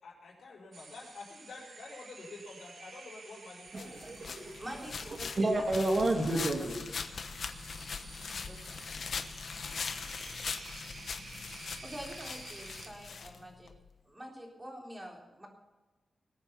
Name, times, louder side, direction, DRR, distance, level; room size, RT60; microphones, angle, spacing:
voice 1, 0.0-4.1, left 3 dB, 90° left, 5.2 m, -48 dB
sound 1, 0.7-12.9, right 3 dB, 60° right, 2.5 m, -51 dB
voice 2, 3.7-6.8, right 2 dB, 40° right, 2.4 m, -31 dB
sound 2, 3.8-13.8, left 5 dB, 60° left, 1.1 m, -41 dB
voice 3, 4.6-5.3 6.1-6.5 8.4-8.9 11.8-13.7 14.0-15.5, equal, 15° right, 3.8 m, -46 dB
20.0 x 8.9 x 6.0 m
wide cardioid pair, 140°, 0 cm